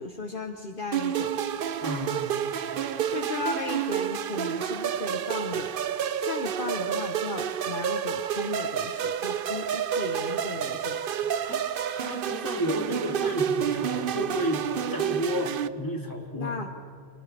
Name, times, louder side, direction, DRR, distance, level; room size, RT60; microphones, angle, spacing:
voice 1, 0.0-1.4 3.1-5.7 6.1-11.1 16.3-16.7, left 4 dB, 55° left, 4 dB, 1.3 m, -36 dB
sound 1, 0.9-15.7, right 8 dB, 60° right, 0.8 m, -29 dB
voice 2, 1.8-2.2 11.4-11.6 11.9-16.6, equal, 20° left, 0 dB, 2.7 m, -31 dB
30.0 x 28.0 x 3.4 m, 2.3 s
omnidirectional pair, 1.1 m